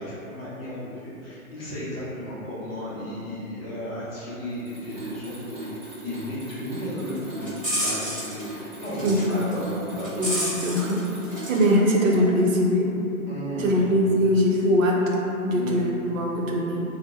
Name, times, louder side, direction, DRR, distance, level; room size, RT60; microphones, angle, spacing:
voice 1, 0.0-10.5 13.3-13.9 15.5-15.8, left 1 dB, 40° left, -9 dB, 0.7 m, -34 dB
Mechanisms, 4.5-11.9, right 2 dB, 25° right, 0.8 m, -39 dB
sound 1, 7.2-8.4 8.8-9.2 9.5-11.6 11.9-12.4, equal, 5° right, 0.4 m, -31 dB
voice 2, 9.0-9.4 10.2-11.0 11.5-13.0 13.6-16.8, equal, 60° right, -2 dB, 0.6 m, -22 dB
2.8 x 2.1 x 3.5 m, 2.9 s
hypercardioid pair, 165°, 44 cm